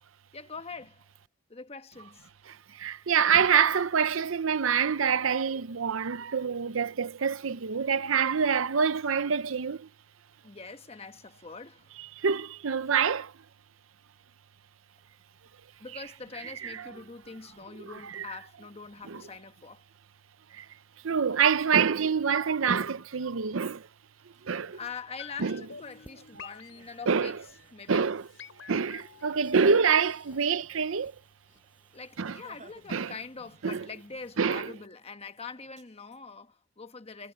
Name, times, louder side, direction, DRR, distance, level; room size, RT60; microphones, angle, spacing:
voice 1, 0.3-1.1 1.5-2.3 10.4-11.9 15.8-19.8 24.7-28.1 31.9-37.3, left 4 dB, 30° left, 1.2 m, -44 dB
voice 2, 2.7-9.9 12.2-13.3 17.8-18.3 19.1-19.2 20.5-20.7 21.0-23.9 24.4-24.8 25.4-25.6 27.1-27.4 27.9-28.3 28.7-31.1 32.2-32.4 32.9-33.1 33.6-33.8 34.4-34.7, right 6 dB, 70° right, 0.7 m, -26 dB
Laughter, 23.8-23.9 24.2-30.9 31.2-31.3 31.6-31.8 32.2-33.2 33.5-34.3 34.7-36.2, right 3 dB, 35° right, 5.4 m, -62 dB
sound 1, 25.2-31.2 31.5-31.6, left 6 dB, 65° left, 5.7 m, -50 dB
sound 2, 25.4-34.4, equal, 5° right, 7.9 m, -64 dB
head